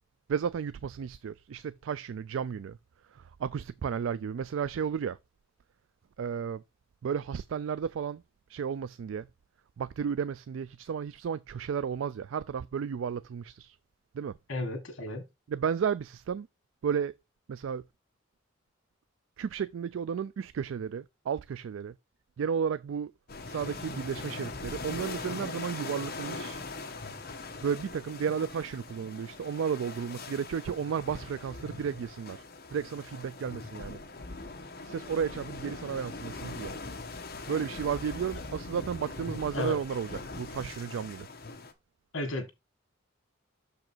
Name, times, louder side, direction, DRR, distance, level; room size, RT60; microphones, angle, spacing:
voice 1, 0.3-2.8 3.1-5.2 6.2-6.6 7.0-8.2 8.5-9.3 9.8-13.8 14.1-14.3 15.5-16.5 16.8-17.1 17.5-17.8 19.4-21.9 22.4-23.1 23.5-26.6 27.6-32.4 32.7-34.0 34.8-36.7 37.5-41.3, right 7 dB, 75° right, 0.3 m, -33 dB
voice 2, 14.5-15.2 39.5-39.8 42.1-42.5, left 2 dB, 80° left, 1.7 m, -33 dB
sound 1, 23.3-41.7, left 3 dB, 50° left, 1.2 m, -41 dB
6.5 x 4.8 x 4.4 m
head